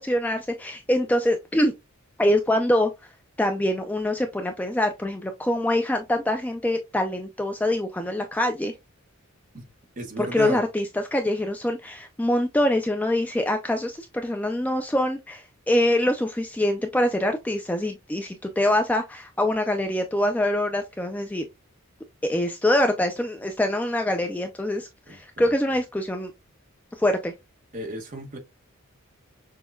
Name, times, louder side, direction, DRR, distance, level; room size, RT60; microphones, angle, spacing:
voice 1, 0.0-1.7 2.2-2.9 3.4-8.7 10.2-21.5 22.2-26.3 27.0-27.3, left 1 dB, 5° left, 0.3 m, -24 dB
voice 2, 10.0-10.6 25.1-25.5 27.7-28.4, right 2 dB, 40° right, 0.9 m, -34 dB
6.1 x 2.2 x 2.2 m
head